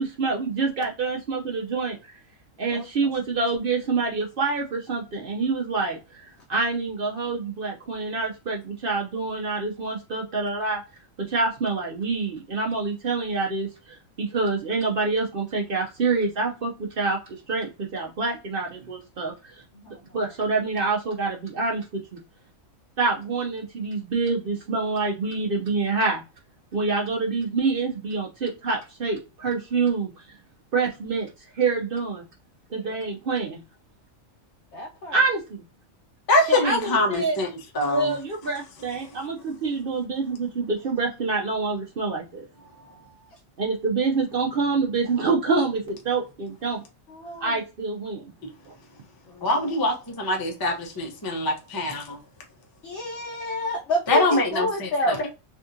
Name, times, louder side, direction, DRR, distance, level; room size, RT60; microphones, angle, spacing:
voice 1, 0.0-2.1 2.6-10.8 11.2-17.2 17.5-19.6 20.1-22.2 23.0-26.2 26.7-30.1 30.7-31.3 31.5-32.2 32.7-33.6 35.1-35.6 36.5-37.4 37.9-42.5 43.6-46.8 47.4-48.3 48.7-48.8, right 4 dB, 55° right, 0.7 m, -26 dB
voice 2, 34.7-35.2 47.1-47.5 49.3-49.7 52.8-55.2, left 1 dB, 60° left, 0.9 m, -28 dB
voice 3, 36.3-37.5 37.7-38.1 49.4-52.2 54.1-54.9, left 1 dB, 25° left, 0.5 m, -23 dB
3.5 x 2.4 x 2.6 m
omnidirectional pair, 1.4 m